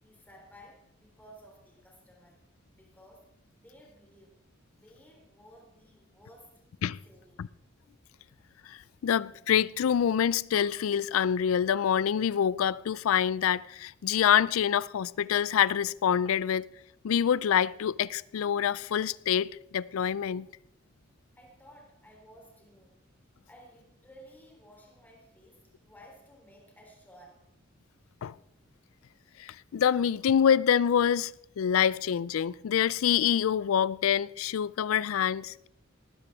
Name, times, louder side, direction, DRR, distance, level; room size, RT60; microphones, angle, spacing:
voice 1, 0.0-2.4 2.7-3.3 3.6-4.3 4.7-6.6 7.1-7.4 21.4-23.0 23.5-27.5, equal, 10° left, 3.5 m, -55 dB
voice 2, 8.7-16.7 17.0-20.5 28.2-28.3 29.4-31.3 31.6-35.7, left 8 dB, 90° left, 0.4 m, -26 dB
18.5 x 9.8 x 3.6 m
head